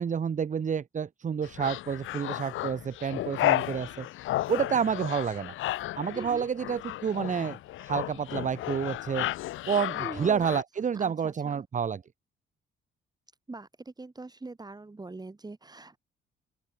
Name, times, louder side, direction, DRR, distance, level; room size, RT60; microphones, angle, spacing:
voice 1, 0.0-4.1 4.5-5.5 6.0-9.3 9.7-12.0, right 7 dB, 40° right, 1.2 m, -29 dB
sound 1, 1.4-10.6, left 15 dB, 80° left, 1.2 m, -33 dB
voice 2, 6.1-6.5 10.0-10.4 10.9-11.6 13.5-16.0, right 3 dB, 20° right, 4.9 m, -42 dB
open air
cardioid pair, 90°, 20 cm